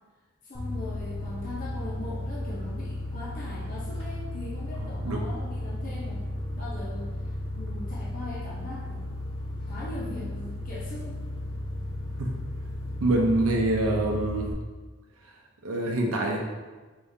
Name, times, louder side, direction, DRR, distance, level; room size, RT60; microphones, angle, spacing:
voice 1, 0.4-9.0 9.7-11.2, left 2 dB, 40° left, -6 dB, 0.6 m, -40 dB
sound 1, 0.5-14.5, left 1 dB, 25° left, 1.0 m, -34 dB
voice 2, 13.0-14.5 15.6-16.4, right 2 dB, 80° right, 0 dB, 0.6 m, -25 dB
4.7 x 3.6 x 2.7 m, 1.3 s
head